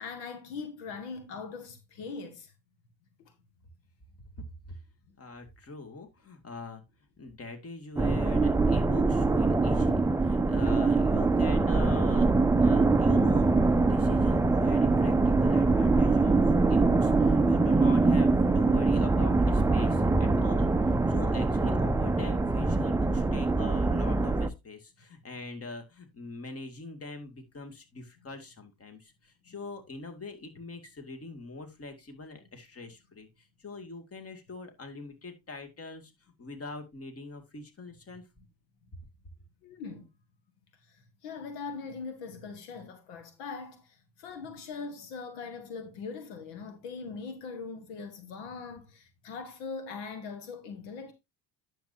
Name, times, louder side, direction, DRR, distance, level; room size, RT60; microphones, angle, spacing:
voice 1, 0.0-2.5 3.2-3.3 29.5-29.6 39.6-40.1 40.8-51.1, left 4 dB, 75° left, 1.8 m, -41 dB
voice 2, 4.4-4.8 5.2-6.8 7.2-16.4 16.7-36.1 36.4-38.2, left 3 dB, 30° left, 2.4 m, -43 dB
sound 1, 8.0-24.5, right 3 dB, 5° right, 0.5 m, -24 dB
10.0 x 7.3 x 2.7 m
hypercardioid pair, 75°, 46 cm